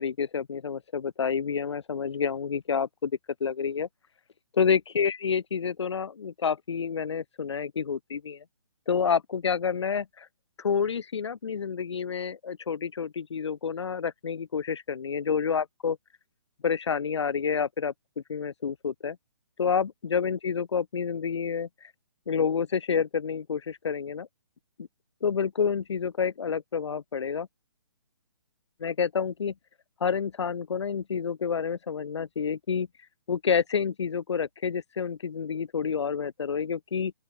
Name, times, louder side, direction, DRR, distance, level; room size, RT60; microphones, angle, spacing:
voice 1, 0.0-3.1 3.4-3.9 4.5-8.4 8.9-10.3 10.6-16.0 16.6-19.2 19.6-21.9 22.3-24.3 25.2-27.5 28.8-29.5 30.0-32.9 33.3-37.1, left 6 dB, 75° left, 0.4 m, -29 dB
open air
figure-of-eight pair, 135°, 15 cm